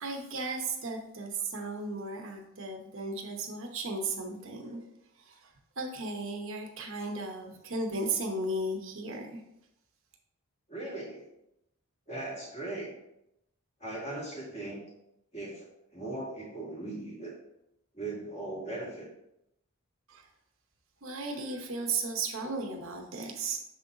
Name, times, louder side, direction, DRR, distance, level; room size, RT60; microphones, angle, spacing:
voice 1, 0.0-4.8 5.8-9.4 20.1-20.2 21.0-23.6, right 3 dB, 60° right, 2 dB, 0.9 m, -35 dB
voice 2, 4.5-4.8 10.7-11.2 12.1-12.9 13.8-14.8 15.3-17.4 17.9-19.1, right 2 dB, 30° left, -4 dB, 2.0 m, -39 dB
6.7 x 3.9 x 3.8 m, 0.82 s
head